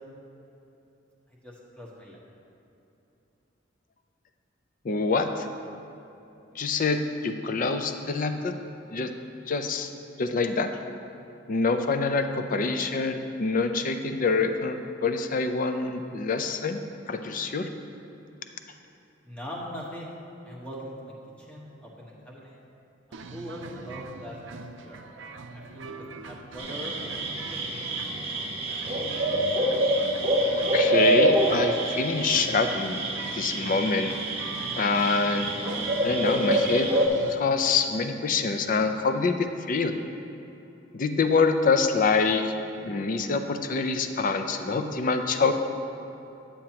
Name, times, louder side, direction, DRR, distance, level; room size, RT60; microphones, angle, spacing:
voice 1, 1.4-2.2 19.2-20.1 20.4-22.6 23.1-25.0 25.5-27.6, equal, 5° left, -5 dB, 1.3 m, -41 dB
voice 2, 4.8-5.5 6.6-8.6 8.9-9.1 9.5-9.9 10.2-10.7 11.5-16.8 17.1-17.7 30.7-33.0 33.3-34.2 34.8-35.5 36.0-36.9 37.3-40.0 40.9-42.5 42.8-45.5, left 4 dB, 45° left, 7 dB, 0.5 m, -25 dB
sound 1, 23.1-37.3, right 3 dB, 85° right, 0.5 m, -42 dB
sound 2, 26.6-37.1, right 1 dB, 30° right, 1.1 m, -26 dB
9.2 x 8.5 x 2.9 m, 2.9 s
head